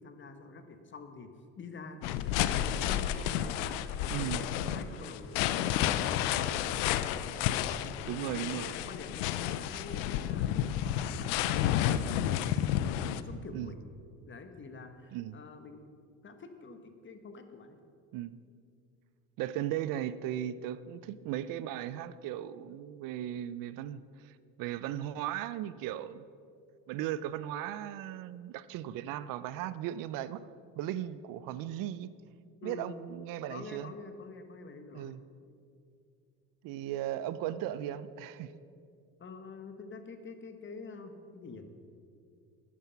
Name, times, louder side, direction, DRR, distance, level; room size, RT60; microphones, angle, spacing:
voice 1, 0.0-7.1 7.8-10.5 11.1-12.3 13.1-13.8 14.3-15.8 16.2-17.8 32.6-33.0 33.5-35.2 39.2-41.7, left 4 dB, 35° left, 7 dB, 1.4 m, -47 dB
sound 1, 2.0-13.2, left 11 dB, 85° left, 0.6 m, -31 dB
voice 2, 4.1-4.4 8.1-8.7 13.5-13.7 15.1-15.4 18.1-18.4 19.4-26.2 26.9-30.5 30.8-32.1 32.6-33.9 34.9-35.2 36.6-38.5, right 12 dB, 65° right, 16 dB, 0.6 m, -37 dB
11.0 x 9.5 x 5.8 m, 2.4 s
supercardioid pair, 90°, 36 cm